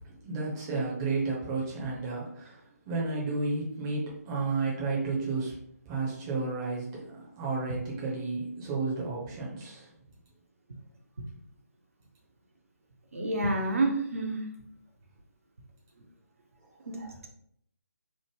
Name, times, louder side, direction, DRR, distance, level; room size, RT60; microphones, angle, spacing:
voice 1, 0.0-5.6 5.9-7.0 7.4-9.9 16.8-17.0, right 3 dB, 15° right, -5 dB, 0.6 m, -32 dB
voice 2, 13.1-14.4 16.9-17.3, right 2 dB, 55° right, 1 dB, 0.6 m, -29 dB
3.1 x 2.0 x 3.1 m, 0.68 s
figure-of-eight pair, 150°, 9 cm